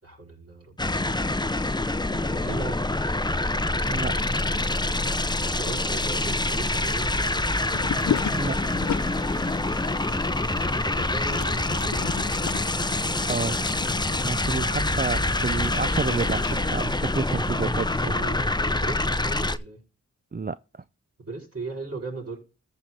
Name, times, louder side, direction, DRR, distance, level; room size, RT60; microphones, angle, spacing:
voice 1, 0.0-0.7 2.1-2.8 5.4-7.5 10.2-12.1 17.6-19.8 21.2-22.4, right 3 dB, 50° right, 6.4 m, -38 dB
sound 1, 0.8-19.6, left 2 dB, 15° left, 0.7 m, -26 dB
voice 2, 3.9-4.2 8.3-8.6 13.2-13.6 14.2-18.1 20.3-20.8, right 4 dB, 30° right, 0.5 m, -29 dB
sound 2, 7.7-16.7, left 9 dB, 65° left, 0.4 m, -35 dB
14.0 x 5.0 x 4.1 m
cardioid pair, 40°, 31 cm